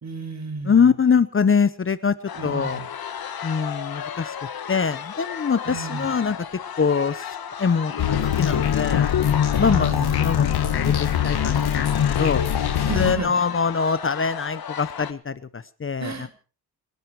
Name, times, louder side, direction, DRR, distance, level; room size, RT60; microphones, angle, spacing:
voice 1, 0.0-0.9 2.4-2.9 5.7-6.1 9.6-10.1 12.8-13.4 16.0-16.3, right 3 dB, 45° right, 8 dB, 4.2 m, -31 dB
voice 2, 0.6-2.2 2.4-2.8 3.4-4.4 4.7-6.4 6.8-7.2 7.6-9.1 9.6-9.9 10.2-12.4 13.0-16.3, left 6 dB, 35° left, 15 dB, 0.9 m, -23 dB
sound 1, 2.3-15.1, left 8 dB, 70° left, 1.7 m, -34 dB
sound 2, 8.0-13.1, left 9 dB, 90° left, 1.8 m, -22 dB
27.0 x 11.0 x 4.8 m, 0.38 s
cardioid pair, 100°, 38 cm